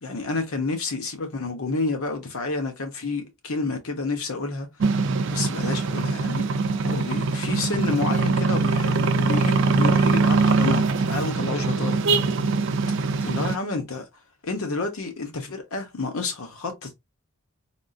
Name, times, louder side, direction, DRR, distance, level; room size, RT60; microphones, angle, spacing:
voice 1, 0.0-4.7 5.3-6.6 6.8-12.0 12.4-12.5 13.2-14.1 14.4-16.9, left 3 dB, 80° left, 1.0 m, -29 dB
sound 1, 4.8-13.6, right 4 dB, 60° right, 0.5 m, -22 dB
3.5 x 2.6 x 2.4 m
head